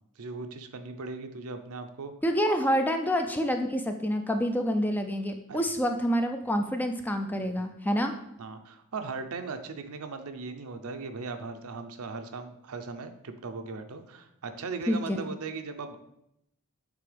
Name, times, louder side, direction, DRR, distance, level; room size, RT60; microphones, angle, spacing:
voice 1, 0.2-2.1 5.5-5.6 7.6-7.7 8.4-16.0, right 4 dB, 75° right, 7 dB, 0.6 m, -38 dB
voice 2, 2.2-8.1 14.9-15.2, equal, 10° left, 6 dB, 0.3 m, -27 dB
8.3 x 3.4 x 3.3 m, 0.79 s
head